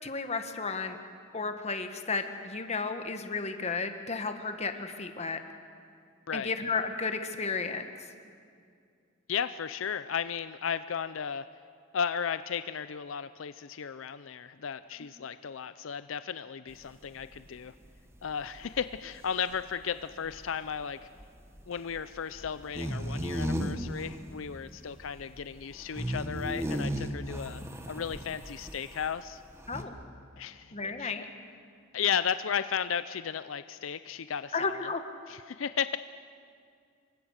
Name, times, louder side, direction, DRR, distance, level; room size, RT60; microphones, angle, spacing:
voice 1, 0.0-1.0 1.3-5.4 6.3-7.8 29.7-30.0 30.7-31.3 34.5-35.0, left 4 dB, 35° left, 7 dB, 1.5 m, -33 dB
voice 2, 9.3-11.5 11.9-17.7 18.2-21.0 21.7-27.6 27.9-29.4 30.4-31.1 31.9-34.8 35.3-36.0, left 7 dB, 80° left, 13 dB, 0.5 m, -34 dB
sound 1, 16.7-29.2 29.4-29.8, equal, 15° right, 1.4 m, -36 dB
26.5 x 23.5 x 6.5 m, 2.2 s
head